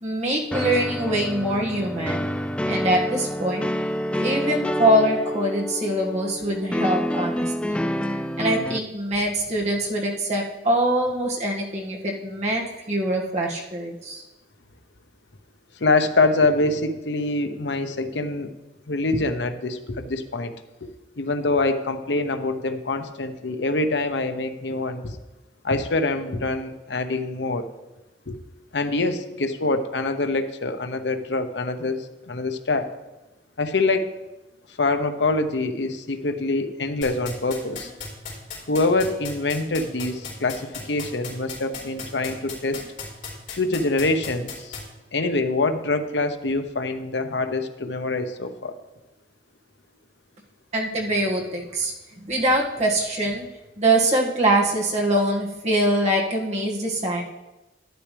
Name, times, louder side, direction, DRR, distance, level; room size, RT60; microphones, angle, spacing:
voice 1, 0.0-2.3 2.7-3.7 4.1-7.8 8.4-14.2 50.7-51.9 52.2-53.4 53.8-57.2, right 1 dB, 40° right, -2 dB, 2.0 m, -23 dB
sound 1, 0.5-8.8, equal, 5° left, 0.4 m, -27 dB
voice 2, 15.8-18.5 18.9-20.5 20.8-20.9 21.2-25.1 25.6-27.6 28.3-28.4 28.7-32.9 33.6-34.1 34.8-37.9 38.7-42.8 43.5-44.8 45.1-48.7, left 2 dB, 80° left, 8 dB, 0.9 m, -25 dB
sound 2, 37.0-44.8, left 6 dB, 50° left, 4.1 m, -34 dB
12.0 x 11.0 x 3.4 m, 1.0 s
head